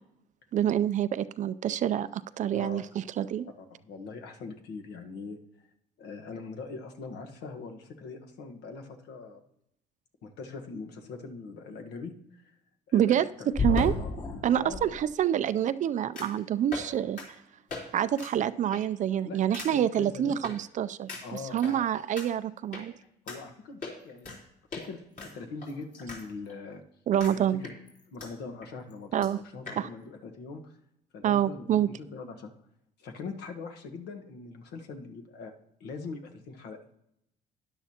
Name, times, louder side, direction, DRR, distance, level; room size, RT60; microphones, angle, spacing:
voice 1, 0.5-3.5 12.9-13.2 13.6-13.9 14.4-17.2 17.9-22.9 27.1-27.6 29.1-29.4 29.8-29.9 31.2-31.9, right 10 dB, 45° right, 15 dB, 0.4 m, -27 dB
voice 2, 3.6-5.4 6.0-9.4 10.2-12.4 12.9-14.2 14.6-15.0 19.2-19.4 19.7-20.4 21.2-21.9 23.2-24.4 24.8-26.8 27.6-27.7 28.1-30.7 31.1-32.5 33.0-35.5 35.8-37.0, left 4 dB, 75° left, 4 dB, 1.3 m, -42 dB
sound 1, 11.1-11.2 13.5-14.8 16.2-16.4 16.7-16.9 17.2-17.3 17.7-17.8 18.1-18.3 18.7-19.0 19.5-19.7 20.4-20.5 21.1-21.7 22.2-22.3 22.7-22.8 23.3-23.4 23.8-24.4 24.7-24.8 25.2-26.2 26.5-26.6 27.2-27.3 27.6-28.3 28.6-28.7 28.9-29.0 29.2-29.3 29.7-29.8, left 3 dB, 50° left, 3.6 m, -34 dB
12.5 x 10.5 x 2.9 m, 0.80 s
cardioid pair, 110°, 17 cm